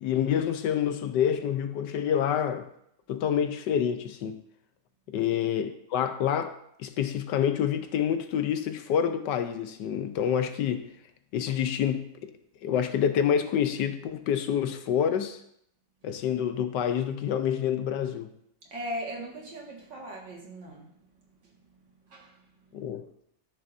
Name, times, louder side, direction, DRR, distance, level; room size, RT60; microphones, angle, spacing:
voice 1, 0.0-2.7 3.1-4.4 5.1-10.9 11.3-12.3 12.6-15.4 16.0-18.3 22.7-23.0, left 8 dB, 75° left, 1.3 m, -27 dB
voice 2, 18.7-21.2 21.6-22.7, equal, 85° right, 2.5 m, -40 dB
13.0 x 6.6 x 2.6 m
omnidirectional pair, 1.9 m